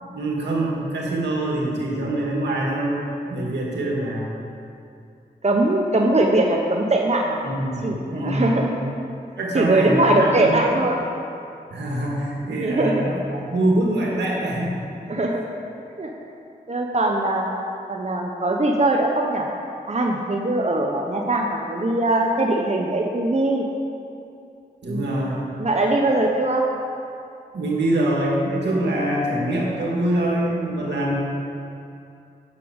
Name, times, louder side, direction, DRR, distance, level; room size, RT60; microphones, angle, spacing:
voice 1, 0.0-3.0 3.3-4.4 7.4-8.8 9.4-10.8 11.7-14.8 24.8-25.5 27.5-31.1, right 1 dB, 90° right, -3 dB, 2.0 m, -24 dB
voice 2, 5.4-7.4 7.8-8.7 9.5-11.0 12.6-13.0 15.1-15.5 16.0-16.1 16.7-17.5 17.9-19.5 19.9-23.6 24.8-25.1 25.6-26.6, right 2 dB, 40° right, 0 dB, 1.1 m, -21 dB
8.3 x 6.8 x 8.2 m, 2.6 s
cardioid pair, 45°, 17 cm